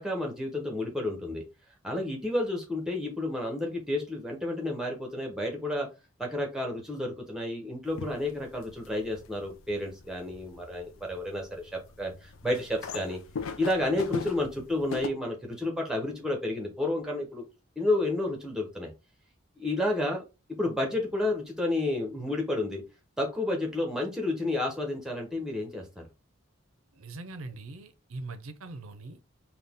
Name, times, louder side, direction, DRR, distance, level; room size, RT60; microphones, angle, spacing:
voice 1, 0.0-1.4 1.8-5.9 6.2-13.2 13.6-17.4 17.8-18.9 19.6-20.2 20.6-22.8 23.2-26.0, left 1 dB, 5° right, 0.9 m, -31 dB
sound 1, 7.9-15.1, left 5 dB, 70° left, 0.5 m, -41 dB
voice 2, 26.9-29.2, right 2 dB, 80° right, 0.6 m, -41 dB
4.0 x 2.3 x 3.6 m
head